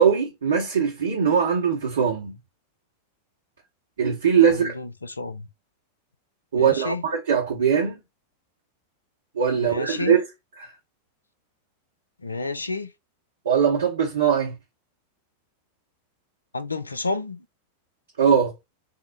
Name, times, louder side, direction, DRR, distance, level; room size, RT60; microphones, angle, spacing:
voice 1, 0.0-2.4 4.0-4.8 6.5-8.0 9.4-10.2 10.6-10.7 13.4-14.6 18.2-18.5, right 7 dB, 65° right, 0.9 m, -21 dB
voice 2, 4.5-5.5 6.5-7.0 9.6-10.2 12.2-12.9 16.5-17.4, left 3 dB, 80° left, 0.3 m, -30 dB
3.6 x 2.0 x 3.8 m
figure-of-eight pair, 90°, 0 cm